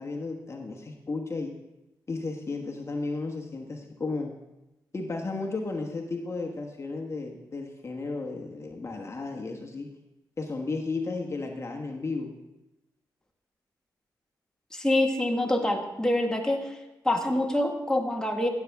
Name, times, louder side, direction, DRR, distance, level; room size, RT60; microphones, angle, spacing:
voice 1, 0.0-1.5 2.1-4.3 4.9-9.9 10.4-12.3, left 3 dB, 40° left, 1 dB, 1.3 m, -34 dB
voice 2, 14.7-16.6 17.1-18.5, left 1 dB, 10° left, 2 dB, 1.6 m, -25 dB
15.0 x 8.3 x 3.5 m, 0.99 s
cardioid pair, 60°, 8 cm